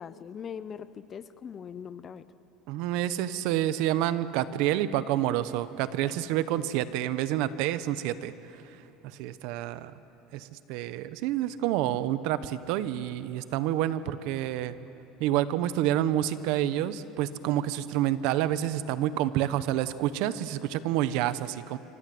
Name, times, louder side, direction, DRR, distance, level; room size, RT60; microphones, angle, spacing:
voice 1, 0.0-2.3, left 7 dB, 25° left, 14 dB, 0.7 m, -41 dB
voice 2, 2.7-9.9 10.3-14.7 15.2-21.8, right 12 dB, 60° right, 14 dB, 1.0 m, -28 dB
26.5 x 25.5 x 7.8 m, 3.0 s
cardioid pair, 170°, 0 cm